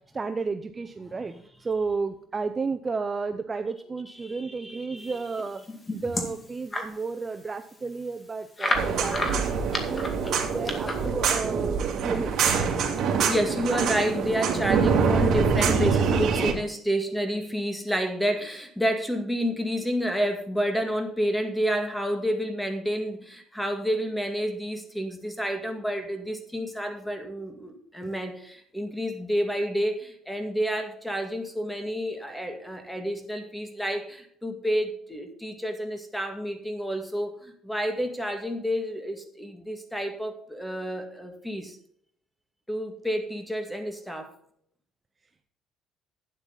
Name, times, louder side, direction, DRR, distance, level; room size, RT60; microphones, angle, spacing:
voice 1, 0.1-1.3 1.6-5.6 5.9-10.2 10.5-12.3, right 4 dB, 25° right, 8 dB, 0.7 m, -32 dB
voice 2, 1.1-1.4 4.1-5.2 13.0-41.8 42.7-44.3, equal, 5° left, 5 dB, 2.0 m, -29 dB
sound 1, 5.4-6.9 7.4-7.5 7.7-7.8 8.6-11.1, left 1 dB, 20° left, 2.2 m, -31 dB
sound 2, 8.7-16.5, right 5 dB, 55° right, 2.7 m, -25 dB
12.0 x 9.0 x 4.0 m, 0.66 s
cardioid pair, 115°, 0 cm